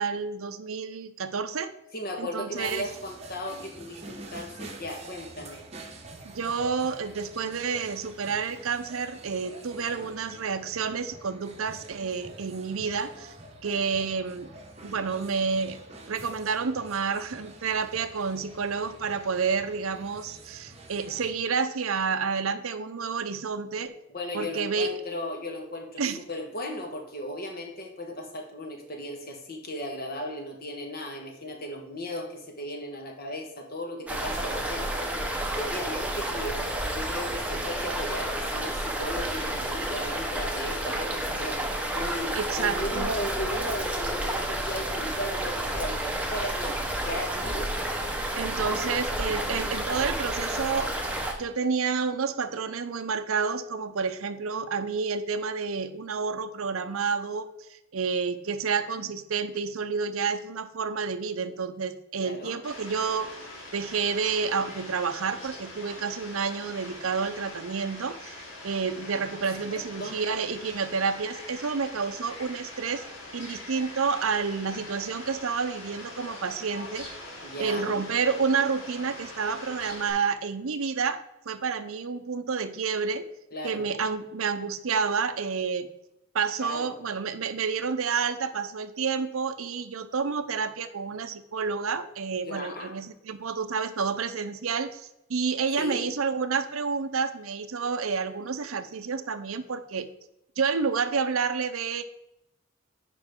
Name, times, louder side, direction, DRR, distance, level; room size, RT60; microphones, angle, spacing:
voice 1, 0.0-1.7 2.2-2.8 6.2-13.3 13.6-14.5 14.8-15.8 16.1-23.9 24.3-24.9 26.0-26.2 42.3-43.1 48.4-50.9 51.4-63.3 63.7-73.0 73.3-77.1 77.6-83.2 83.6-85.9 86.3-100.1 100.6-102.0, right 5 dB, 75° right, 11 dB, 0.6 m, -29 dB
voice 2, 1.9-5.6 9.9-10.1 24.1-26.0 26.3-35.1 35.5-36.6 36.9-41.6 41.9-46.8 47.0-47.7 48.6-48.9 62.2-62.6 70.0-70.2 77.4-78.0 83.5-83.8 86.6-86.9 92.4-92.9 95.8-96.1, left 1 dB, 45° left, 2 dB, 1.4 m, -36 dB
sound 1, 2.6-21.3, right 2 dB, 30° right, 0.9 m, -47 dB
sound 2, 34.1-51.3, right 1 dB, 5° right, 0.8 m, -30 dB
Fowl, 62.6-80.1, left 1 dB, 70° left, 3.0 m, -43 dB
9.8 x 5.3 x 3.6 m, 0.88 s
head